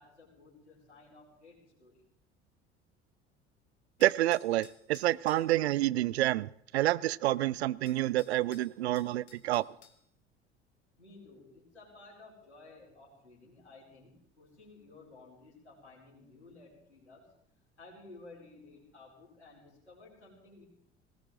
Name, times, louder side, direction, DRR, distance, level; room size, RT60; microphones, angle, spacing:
voice 1, 0.0-2.0 11.0-17.3 17.8-20.7, left 3 dB, 85° left, 4.6 m, -55 dB
sound 1, 4.0-5.5 7.3-7.4 7.9-10.0, left 8 dB, 70° left, 1.9 m, -58 dB
voice 2, 4.0-9.6, right 15 dB, 70° right, 0.5 m, -28 dB
20.0 x 18.0 x 3.8 m
figure-of-eight pair, 65°, 33 cm